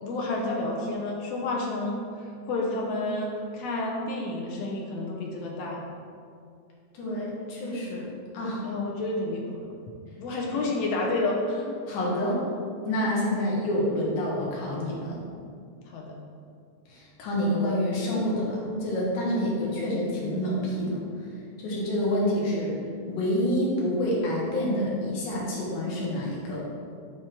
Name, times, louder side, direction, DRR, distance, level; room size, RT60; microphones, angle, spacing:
voice 1, 0.0-5.8 8.6-9.7 10.2-11.7 15.9-16.2, left 2 dB, 70° left, -1 dB, 1.7 m, -30 dB
voice 2, 6.9-8.1 8.3-8.6 10.3-10.6 11.9-12.4 12.8-15.2 16.9-21.0 21.6-22.8 23.1-26.6, left 1 dB, 90° left, -5 dB, 2.9 m, -28 dB
7.3 x 3.3 x 5.9 m, 2.3 s
omnidirectional pair, 3.4 m